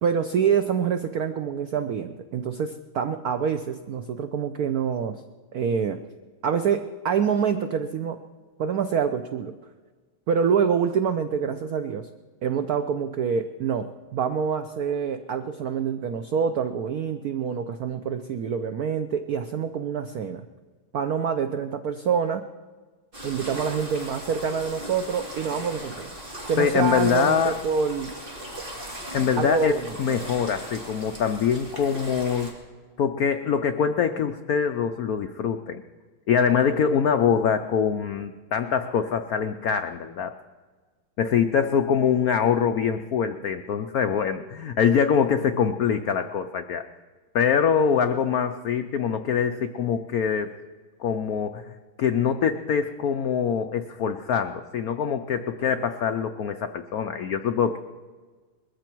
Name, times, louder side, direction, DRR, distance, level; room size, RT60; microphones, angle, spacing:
voice 1, 0.0-5.2 5.5-6.0 6.4-8.2 8.6-9.6 10.3-12.1 12.4-20.4 20.9-22.4 23.2-26.1 26.5-28.1 29.3-30.0, right 6 dB, 90° right, 8 dB, 0.8 m, -26 dB
sound 1, 23.1-32.5, equal, 25° right, 2.7 m, -38 dB
voice 2, 26.6-27.6 29.1-32.5 33.0-35.8 36.3-40.3 41.2-46.8 47.3-50.5 51.0-51.7 52.0-57.8, left 7 dB, 85° left, 8 dB, 0.8 m, -24 dB
21.0 x 14.5 x 4.6 m, 1.4 s
omnidirectional pair, 2.4 m